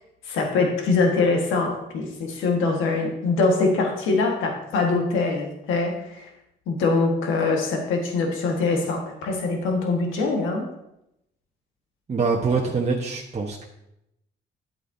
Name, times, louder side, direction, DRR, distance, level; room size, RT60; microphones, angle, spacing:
voice 1, 0.2-6.3 6.7-10.6, left 3 dB, 90° left, 1 dB, 1.7 m, -23 dB
voice 2, 12.1-13.6, right 4 dB, 35° right, -1 dB, 1.1 m, -24 dB
10.5 x 8.2 x 2.8 m, 0.84 s
cardioid pair, 90°, 20 cm